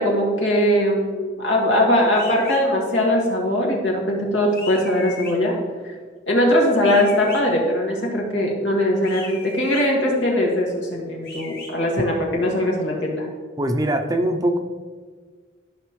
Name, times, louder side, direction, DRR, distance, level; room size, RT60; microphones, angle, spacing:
voice 1, 0.0-5.6 6.3-13.3, left 1 dB, 80° left, -2 dB, 2.2 m, -20 dB
sound 1, 2.1-2.6 4.5-5.3 6.8-7.4 9.0-9.8 11.2-11.7, left 4 dB, 55° left, 2.3 m, -37 dB
voice 2, 13.6-14.6, right 1 dB, 20° right, 5 dB, 0.6 m, -21 dB
13.0 x 5.9 x 3.2 m, 1.5 s
head